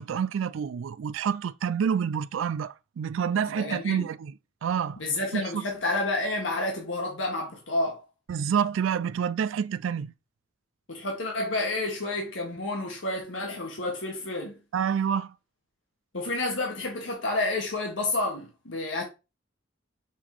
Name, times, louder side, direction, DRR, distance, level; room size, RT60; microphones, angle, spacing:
voice 1, 0.0-4.3 4.6-5.0 5.3-5.6 8.3-10.1 14.7-15.3, right 7 dB, 85° right, 0.3 m, -28 dB
voice 2, 3.5-4.1 5.0-8.0 10.9-14.6 16.1-19.0, left 2 dB, 80° left, 1.7 m, -30 dB
6.7 x 3.7 x 4.8 m
head